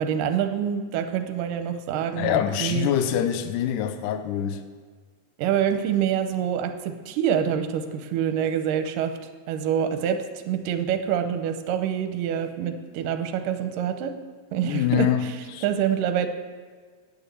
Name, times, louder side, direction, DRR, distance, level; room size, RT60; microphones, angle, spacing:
voice 1, 0.0-2.9 5.4-14.2 14.5-16.3, right 9 dB, 75° right, 2.1 m, -26 dB
voice 2, 2.2-4.6 14.6-15.2 15.5-15.6, left 10 dB, 80° left, 1.9 m, -24 dB
9.6 x 7.0 x 7.8 m
omnidirectional pair, 4.3 m